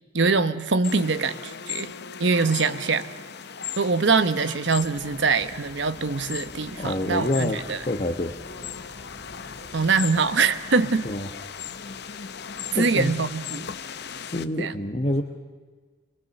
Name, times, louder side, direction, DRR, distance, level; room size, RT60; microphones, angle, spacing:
voice 1, 0.1-1.9 2.2-3.1 3.7-7.8 9.7-11.0 12.7-13.7 14.6-14.8, right 4 dB, 65° right, 11 dB, 1.1 m, -23 dB
sound 1, 0.8-14.5, left 7 dB, 55° left, 0.7 m, -38 dB
sound 2, 4.8-14.5, equal, 15° right, 3.9 m, -50 dB
voice 2, 6.8-8.4 11.0-11.3 12.7-13.1 14.2-15.2, left 1 dB, 35° left, 2 dB, 1.1 m, -27 dB
24.5 x 20.0 x 6.7 m, 1.5 s
head